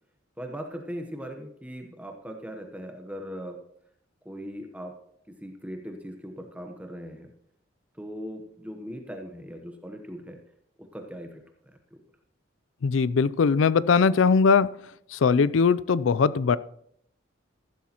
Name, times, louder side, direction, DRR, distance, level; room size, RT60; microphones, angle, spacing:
voice 1, 0.4-3.6 4.2-4.9 5.3-7.3 7.9-10.4 10.8-12.0, equal, 5° right, 4 dB, 0.9 m, -39 dB
voice 2, 12.8-14.7 15.1-16.6, left 5 dB, 80° left, 18 dB, 0.4 m, -20 dB
14.5 x 12.0 x 2.9 m, 0.72 s
head